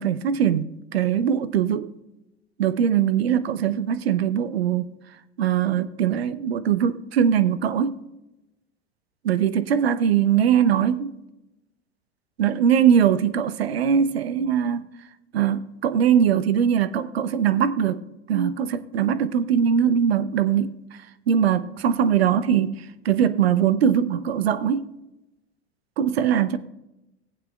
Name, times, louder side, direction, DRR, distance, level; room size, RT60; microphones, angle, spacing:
voice 1, 0.0-1.9 2.6-4.9 5.4-8.0 9.2-11.1 12.4-14.8 15.3-18.0 18.3-24.9 26.0-26.6, right 8 dB, 65° right, 0.6 m, -21 dB
19.0 x 8.6 x 2.3 m
figure-of-eight pair, 85°, 33 cm